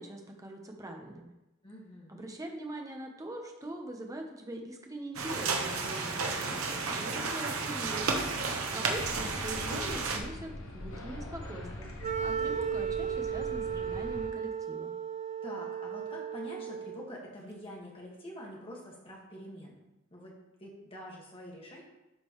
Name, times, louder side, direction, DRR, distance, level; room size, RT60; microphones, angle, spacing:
voice 1, 0.0-1.3 2.1-8.1 8.7-11.9 12.2-14.9, right 1 dB, 15° right, 2 dB, 0.9 m, -42 dB
voice 2, 1.6-2.3 8.7-9.2 15.4-19.8 20.1-20.4 20.6-21.8, equal, 25° left, -3 dB, 1.8 m, -46 dB
sound 1, 5.1-10.2, right 4 dB, 90° right, 1.0 m, -32 dB
sound 2, 8.9-14.3, left 1 dB, 70° left, 1.1 m, -43 dB
Wind instrument woodwind instrument, 12.0-17.1, right 8 dB, 30° right, 0.4 m, -35 dB
11.0 x 5.2 x 3.2 m, 0.98 s
head